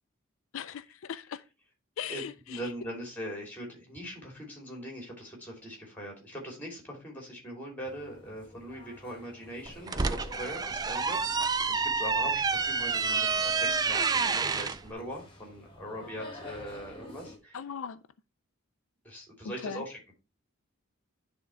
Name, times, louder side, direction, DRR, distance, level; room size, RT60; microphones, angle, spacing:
voice 1, 0.5-1.4 2.0-2.6 17.5-18.0 19.6-19.8, left 8 dB, 75° left, 0.4 m, -38 dB
voice 2, 2.1-17.7 19.0-20.0, equal, 10° left, 3.0 m, -41 dB
sound 1, 7.8-17.4, left 1 dB, 25° left, 1.7 m, -50 dB
sound 2, 9.7-14.8, right 4 dB, 20° right, 0.3 m, -28 dB
10.0 x 3.7 x 4.4 m
head